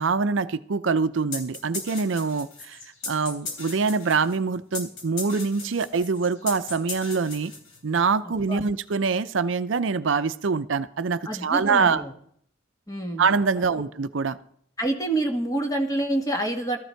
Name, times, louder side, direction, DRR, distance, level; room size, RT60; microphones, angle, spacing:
voice 1, 0.0-2.8 3.1-7.5 7.8-12.0 13.2-14.4, right 5 dB, 70° right, 13 dB, 0.6 m, -24 dB
sound 1, 1.3-8.0, left 3 dB, 85° left, 3.5 m, -37 dB
voice 2, 11.3-12.1 12.9-13.2 14.8-16.8, right 1 dB, 20° left, 3 dB, 1.8 m, -27 dB
14.5 x 13.5 x 4.5 m, 0.65 s
head